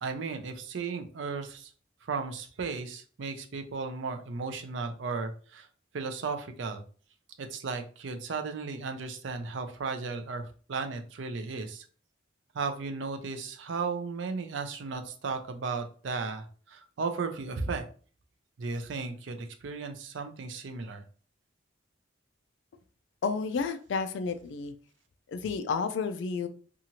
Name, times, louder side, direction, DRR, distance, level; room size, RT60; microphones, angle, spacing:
voice 1, 0.0-1.7 2.0-5.7 5.9-6.8 7.4-11.8 12.5-17.8 18.6-21.0, right 4 dB, 70° right, 6 dB, 0.4 m, -35 dB
voice 2, 23.2-24.7 25.3-26.5, left 5 dB, 70° left, 10 dB, 0.3 m, -31 dB
2.8 x 2.4 x 2.8 m, 0.41 s
head